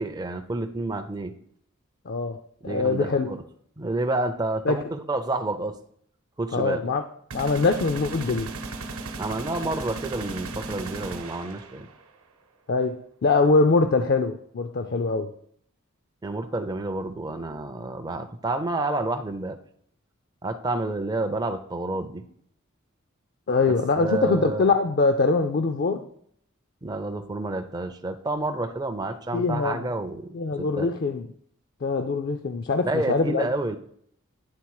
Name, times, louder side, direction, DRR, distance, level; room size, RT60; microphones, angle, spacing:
voice 1, 0.0-1.3 2.6-3.4 3.8-5.8 6.4-6.8 9.2-11.9 16.2-19.6 20.4-22.2 23.7-24.7 26.8-30.9 32.8-33.8, right 2 dB, 20° right, 0.4 m, -29 dB
voice 2, 2.1-2.4 2.6-3.3 4.7-4.8 6.5-7.0 7.3-8.5 12.7-15.3 23.5-26.0 29.3-29.9 30.3-31.3 31.8-33.5, left 3 dB, 50° left, 0.4 m, -23 dB
sound 1, 7.3-12.0, right 3 dB, 85° right, 0.9 m, -36 dB
9.6 x 3.7 x 4.7 m
head